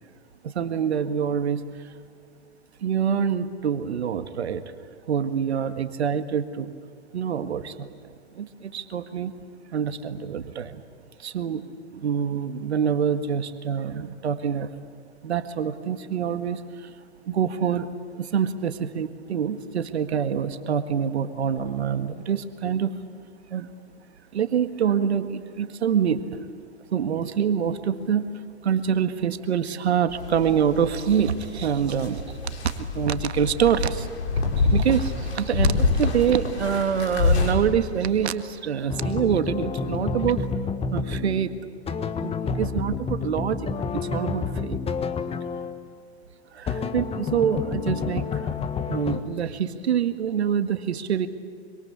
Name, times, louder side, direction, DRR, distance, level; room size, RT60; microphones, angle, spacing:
voice 1, 0.4-1.6 2.8-4.6 5.1-6.7 7.1-7.9 8.3-9.3 9.7-10.8 11.2-14.7 15.2-16.9 17.3-17.9 18.1-23.0 23.5-23.7 24.3-26.3 26.9-28.3 28.6-32.5 32.8-34.1 34.3-40.5 40.9-41.5 42.2-44.8 46.5-48.5 48.9-51.3, right 8 dB, 75° right, 9 dB, 1.8 m, -26 dB
sound 1, 30.1-37.6, left 4 dB, 75° left, 6.6 m, -26 dB
sound 2, 38.9-45.9 46.7-49.2, left 5 dB, 20° left, 1.6 m, -29 dB
26.0 x 25.5 x 8.6 m, 2.1 s
hypercardioid pair, 110°, 33 cm